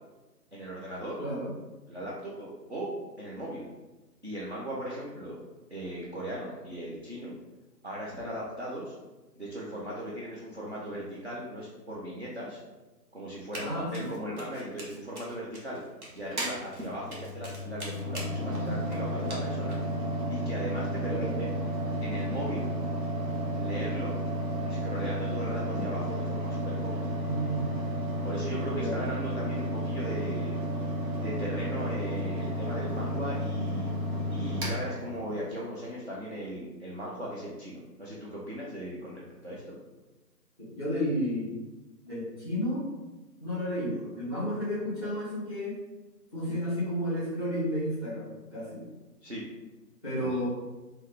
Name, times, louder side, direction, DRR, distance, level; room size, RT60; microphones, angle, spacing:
voice 1, 0.5-1.2 1.9-2.9 3.2-3.6 4.2-5.4 5.7-7.4 7.8-8.9 9.4-12.6 13.1-15.8 16.1-19.8 20.3-21.5 22.0-22.6 23.5-24.1 24.6-27.1 28.2-30.6 31.1-33.9 34.3-39.8 46.5-46.6 49.2-49.4 50.2-50.4, equal, 45° right, -6 dB, 0.5 m, -38 dB
voice 2, 1.2-1.5 13.6-14.1 21.1-21.3 27.2-27.9 28.7-29.0 40.7-41.6 42.0-42.9 43.4-45.7 46.3-48.9 50.0-50.5, equal, 15° right, -9 dB, 0.9 m, -32 dB
Run, 13.5-13.7 13.9-19.9, right 1 dB, 60° right, 1.2 m, -44 dB
Mechanical fan, 16.3-35.6, equal, 80° right, 1.4 m, -32 dB
3.0 x 2.8 x 3.2 m, 1.1 s
figure-of-eight pair, 165°, 50 cm